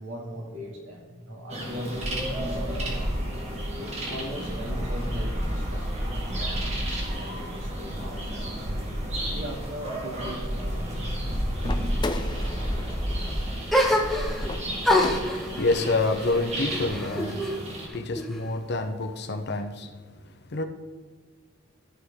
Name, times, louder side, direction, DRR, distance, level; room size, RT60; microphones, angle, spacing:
voice 1, 0.0-3.1 3.7-8.7 9.3-11.0 11.6-11.9, equal, 65° right, -1 dB, 2.4 m, -39 dB
sound 1, 1.5-17.9, equal, 35° right, 1.9 m, -31 dB
sound 2, 11.6-15.7, left 2 dB, 20° left, 0.6 m, -37 dB
sound 3, 13.7-14.5 14.8-17.6 17.9-18.7, left 1 dB, ahead, 1.2 m, -26 dB
voice 2, 15.2-17.4 17.9-20.0 20.5-20.7, left 2 dB, 55° left, 8 dB, 0.8 m, -28 dB
14.0 x 6.5 x 3.7 m, 1.5 s
head